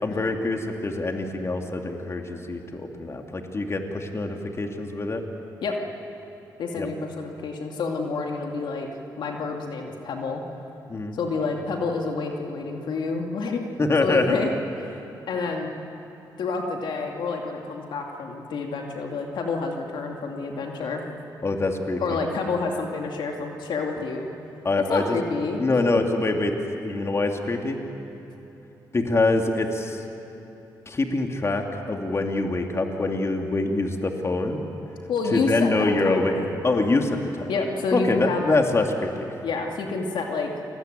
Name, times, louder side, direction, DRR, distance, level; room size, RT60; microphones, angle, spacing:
voice 1, 0.0-5.2 6.8-6.9 10.9-11.1 13.8-14.4 21.4-22.2 24.6-25.2 25.6-27.8 28.9-30.0 30.9-34.6 35.3-36.3 36.6-37.5 37.9-39.3, left 2 dB, 35° left, 3 dB, 2.8 m, -25 dB
voice 2, 6.6-8.9 9.2-10.4 11.1-13.6 14.0-14.5 14.8-15.7 16.4-21.0 22.0-24.3 24.9-25.6 35.1-36.5 37.5-38.5 39.4-40.5, left 4 dB, 75° left, 2 dB, 2.5 m, -28 dB
28.0 x 20.5 x 9.3 m, 3.0 s
cardioid pair, 70°, 8 cm